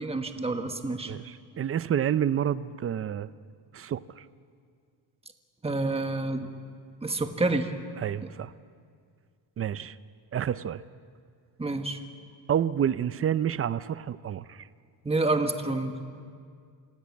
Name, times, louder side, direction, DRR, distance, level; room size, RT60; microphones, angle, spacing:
voice 1, 0.0-1.1 5.6-6.5 7.0-7.7 11.6-12.0 15.0-16.0, right 2 dB, 15° right, 6 dB, 1.4 m, -28 dB
voice 2, 1.0-3.3 3.7-4.2 8.0-8.5 9.6-9.9 10.3-10.8 12.5-14.6, right 9 dB, 30° right, 15 dB, 0.5 m, -29 dB
27.5 x 17.0 x 8.5 m, 2.1 s
cardioid pair, 155°, 44 cm